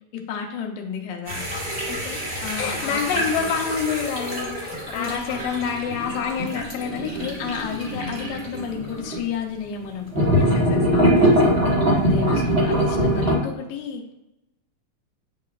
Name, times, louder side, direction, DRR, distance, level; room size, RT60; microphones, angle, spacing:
voice 1, 0.1-1.4 2.4-3.5 4.9-5.4 7.4-10.7 11.9-14.1, left 6 dB, 75° left, 2 dB, 1.5 m, -32 dB
sound 1, 1.3-9.2 10.1-13.4, equal, 80° right, 0.5 m, -23 dB
voice 2, 1.9-7.4 10.4-11.9 12.3-12.5, left 7 dB, 90° left, 3 dB, 2.5 m, -29 dB
8.4 x 5.4 x 2.3 m, 0.90 s
omnidirectional pair, 3.9 m